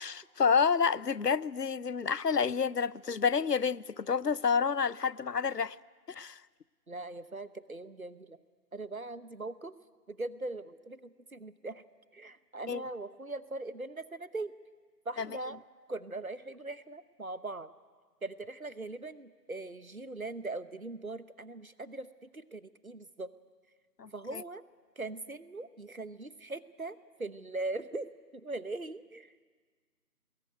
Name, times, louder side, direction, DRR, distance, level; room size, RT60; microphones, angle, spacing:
voice 1, 0.0-5.8 6.1-6.4 12.7-12.8 15.2-15.3 24.0-24.4, left 6 dB, 80° left, 0.7 m, -29 dB
voice 2, 6.9-8.4 8.7-9.7 10.1-11.8 12.1-14.5 15.0-15.6 15.9-17.7 18.2-23.3 24.1-24.6 25.0-29.4, right 2 dB, 60° right, 1.1 m, -40 dB
24.5 x 20.5 x 9.3 m
figure-of-eight pair, 175°, 48 cm